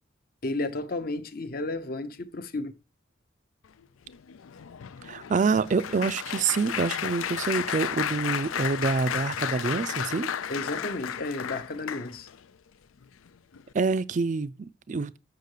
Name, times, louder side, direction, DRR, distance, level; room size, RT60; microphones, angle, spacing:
voice 1, 0.4-2.7 10.5-12.3, left 2 dB, 45° left, 0.8 m, -32 dB
Applause, 4.1-12.4 13.0-13.3 13.5-13.7, left 9 dB, 90° left, 0.5 m, -33 dB
voice 2, 5.0-10.3 13.7-15.2, right 4 dB, 40° right, 0.4 m, -27 dB
6.7 x 6.6 x 6.5 m
head